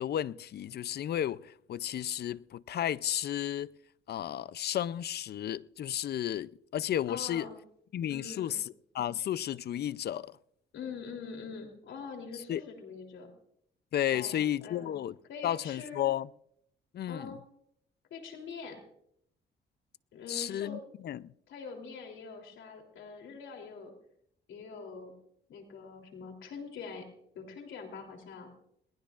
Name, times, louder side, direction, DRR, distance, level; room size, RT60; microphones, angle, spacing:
voice 1, 0.0-3.7 4.1-7.5 7.9-8.6 8.9-10.3 12.5-12.6 13.9-15.1 15.4-16.3 16.9-17.3 20.3-21.3, left 11 dB, 55° left, 0.5 m, -33 dB
voice 2, 7.0-7.6 8.1-8.6 10.7-13.3 14.1-15.0 15.3-16.1 17.1-17.4 18.1-18.8 20.1-20.8 21.5-23.9 24.5-25.1 25.5-27.1 27.3-28.5, left 5 dB, 75° left, 3.3 m, -44 dB
22.0 x 19.5 x 2.5 m
cardioid pair, 90°, 20 cm